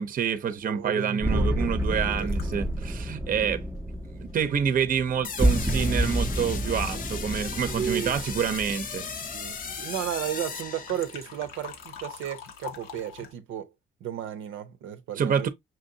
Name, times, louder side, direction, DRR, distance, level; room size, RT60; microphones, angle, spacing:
voice 1, 0.0-3.6 4.1-9.1 15.2-15.5, right 7 dB, 45° right, 0.7 m, -27 dB
voice 2, 0.6-2.3 3.4-3.5 7.6-8.2 9.3-13.7 14.0-15.5, right 9 dB, 80° right, 0.6 m, -34 dB
sound 1, 1.2-10.1, right 1 dB, 10° right, 0.6 m, -29 dB
sound 2, 1.8-4.6 5.3-5.4 5.7-6.2 10.7-13.3, left 7 dB, 90° left, 1.0 m, -45 dB
sound 3, 5.2-11.4, left 6 dB, 45° left, 0.6 m, -37 dB
5.9 x 2.6 x 2.7 m
cardioid pair, 90°, 20 cm